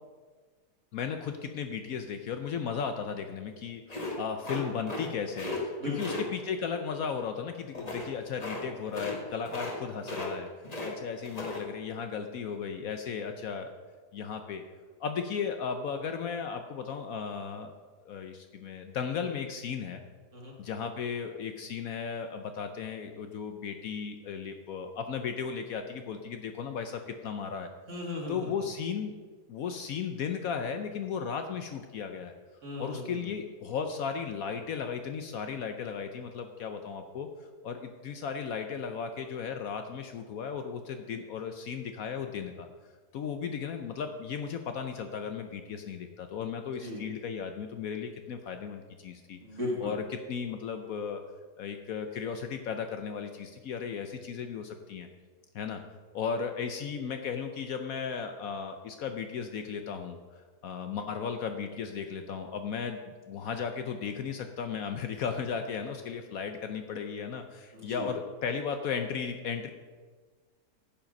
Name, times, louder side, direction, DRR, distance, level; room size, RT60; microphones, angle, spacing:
voice 1, 0.9-10.5 10.8-13.7 14.1-14.6 15.0-17.7 18.0-20.0 20.6-27.7 28.3-29.1 29.5-32.3 32.8-37.3 37.6-42.7 43.1-49.4 49.8-51.2 51.6-55.1 55.5-55.8 56.1-69.7, left 6 dB, 65° left, 7 dB, 1.0 m, -35 dB
sound 1, 3.9-5.1 5.3-5.6 6.0-6.2 7.7-8.1 8.4-8.6 8.9-9.2 9.4-9.8 10.0-10.9 11.2-11.6, left 2 dB, 25° left, 1.6 m, -36 dB
voice 2, 5.8-6.2 20.3-20.5 27.9-28.5 32.6-33.1 46.8-47.0 49.4-49.9 67.7-68.1, left 1 dB, 45° right, -2 dB, 2.4 m, -36 dB
10.5 x 7.4 x 5.2 m, 1.5 s
omnidirectional pair, 1.8 m